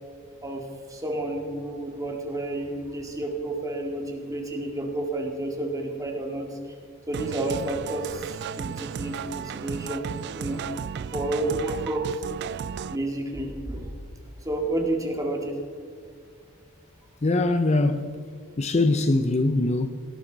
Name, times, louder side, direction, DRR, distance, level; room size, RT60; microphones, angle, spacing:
voice 1, 0.4-6.5 7.1-10.1 10.3-10.6 11.1-12.2 12.9-13.9 14.4-15.5, right 1 dB, 15° right, 1.9 m, -30 dB
sound 1, 7.1-13.0, right 7 dB, 50° right, 0.3 m, -34 dB
voice 2, 17.2-18.2 18.6-19.9, left 2 dB, 30° left, 0.5 m, -22 dB
18.5 x 12.0 x 4.0 m
head